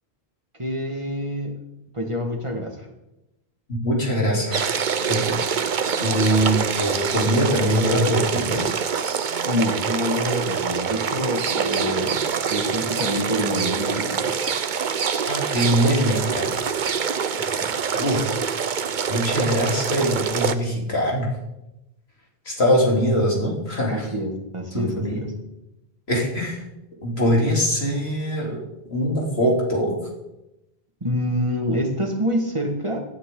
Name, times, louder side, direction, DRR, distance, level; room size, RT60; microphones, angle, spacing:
voice 1, 0.6-1.6 1.9-2.9 9.5-14.4 17.4-17.7 23.9-25.3 31.0-33.1, equal, 30° right, 3 dB, 1.8 m, -27 dB
voice 2, 3.7-5.4 6.0-8.7 15.3-16.6 17.6-17.7 17.9-18.3 19.1-21.3 22.5-24.1 24.7-25.2 26.1-26.6 27.0-28.6 28.9-30.0, equal, 85° left, -2 dB, 3.6 m, -22 dB
sound 1, 4.5-20.5, right 6 dB, 55° right, 0.8 m, -25 dB
18.0 x 12.0 x 3.8 m, 0.94 s
omnidirectional pair, 1.0 m